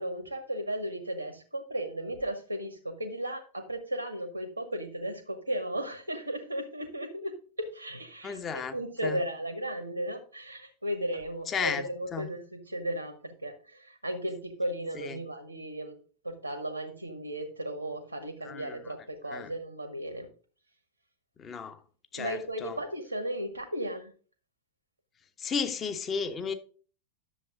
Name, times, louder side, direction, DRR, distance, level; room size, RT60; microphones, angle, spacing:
voice 1, 0.0-16.0 16.2-20.3 22.1-24.1, right 1 dB, 90° right, 1.5 m, -35 dB
voice 2, 8.2-8.8 9.0-9.2 11.5-12.3 14.9-15.2 18.4-18.8 19.3-19.5 21.4-21.8 22.1-22.7 25.4-26.5, left 6 dB, 25° left, 1.2 m, -34 dB
11.0 x 7.2 x 3.8 m
figure-of-eight pair, 90°, 0 cm